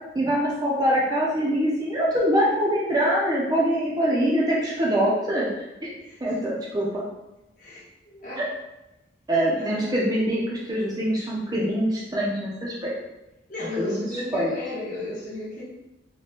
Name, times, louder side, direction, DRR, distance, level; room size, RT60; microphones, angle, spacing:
voice 1, 0.1-5.5 5.8-5.9 6.2-7.0 8.4-8.5 9.3-12.9 13.8-14.0 14.3-14.5, equal, 20° right, -5 dB, 0.5 m, -24 dB
voice 2, 7.6-8.4 9.6-10.0 13.5-15.6, left 2 dB, 45° left, -6 dB, 1.0 m, -34 dB
2.8 x 2.2 x 3.3 m, 0.97 s
head